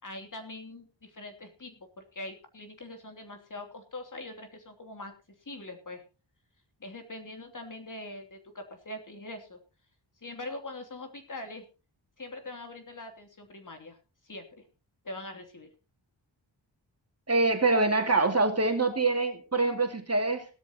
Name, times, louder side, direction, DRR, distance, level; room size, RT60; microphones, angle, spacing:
voice 1, 0.0-5.1 5.4-6.0 6.8-9.6 10.2-11.6 12.2-14.0 14.2-14.6 15.0-15.7, left 2 dB, 45° left, 5 dB, 3.1 m, -42 dB
voice 2, 17.3-20.5, right 3 dB, 35° right, 5 dB, 2.5 m, -25 dB
17.5 x 13.0 x 2.9 m, 0.31 s
wide cardioid pair, 80°, 43 cm